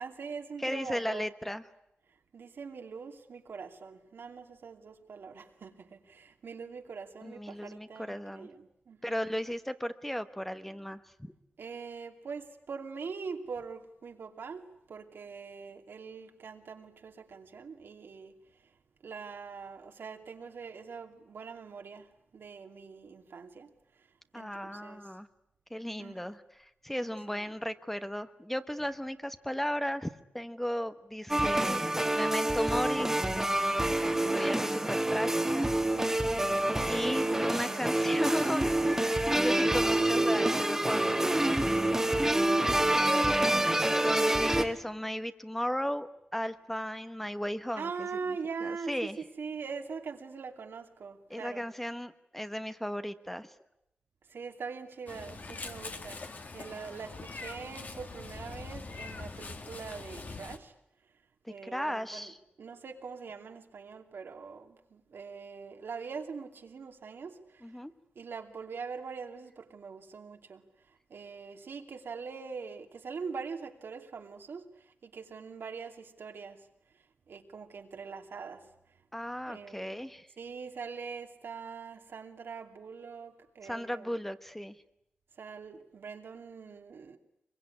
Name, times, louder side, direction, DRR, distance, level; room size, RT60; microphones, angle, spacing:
voice 1, 0.0-1.3 2.3-9.2 11.6-18.3 19.0-23.7 24.3-25.0 26.0-26.3 27.0-27.5 37.2-38.0 42.7-43.3 47.8-51.7 54.3-56.2 56.5-60.7 61.5-62.3 62.6-67.6 68.2-70.6 71.1-74.7 75.0-76.6 77.3-78.6 79.5-80.1 80.4-84.2 85.4-87.2, right 5 dB, 80° right, 2.6 m, -43 dB
voice 2, 0.6-1.6 7.2-8.5 9.0-11.3 24.3-25.3 25.7-31.9 32.1-33.1 34.0-35.7 36.9-39.0 39.3-41.4 43.8-47.9 48.6-49.2 51.3-53.5 61.4-62.4 67.6-67.9 79.1-80.3 83.6-84.8, equal, 5° left, 1.1 m, -35 dB
sound 1, 31.3-44.6, right 1 dB, 10° right, 1.7 m, -27 dB
Meow, 55.1-60.6, left 3 dB, 50° left, 2.0 m, -43 dB
24.5 x 22.5 x 9.8 m
wide cardioid pair, 100°, 4 cm